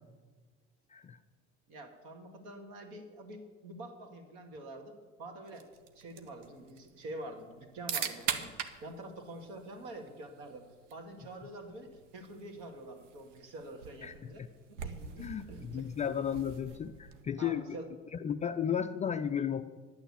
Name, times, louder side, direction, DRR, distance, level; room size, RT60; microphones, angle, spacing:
voice 1, 1.7-4.9 5.2-5.7 5.9-8.5 8.8-10.7 10.9-14.4 14.7-15.8 17.4-17.9, right 1 dB, 55° right, 5 dB, 2.2 m, -46 dB
sound 1, 5.5-17.4, right 7 dB, 70° right, 1.0 m, -43 dB
voice 2, 15.2-17.8 18.1-19.7, left 8 dB, 20° left, 9 dB, 0.4 m, -34 dB
10.5 x 9.0 x 8.5 m, 1.4 s
figure-of-eight pair, 65°, 38 cm